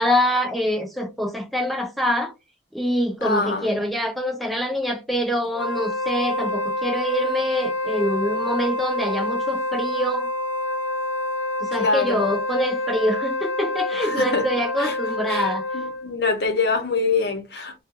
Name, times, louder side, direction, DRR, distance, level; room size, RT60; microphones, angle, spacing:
voice 1, 0.0-2.3 2.7-10.3 11.6-15.6, equal, ahead, 0.5 m, -25 dB
voice 2, 3.2-3.7 11.8-12.2 14.0-14.4 14.8-14.9 15.3-15.4 15.7-17.7, left 4 dB, 55° left, 0.8 m, -24 dB
Wind instrument woodwind instrument, 5.5-16.1, left 1 dB, 75° left, 0.5 m, -27 dB
2.4 x 2.3 x 2.8 m
head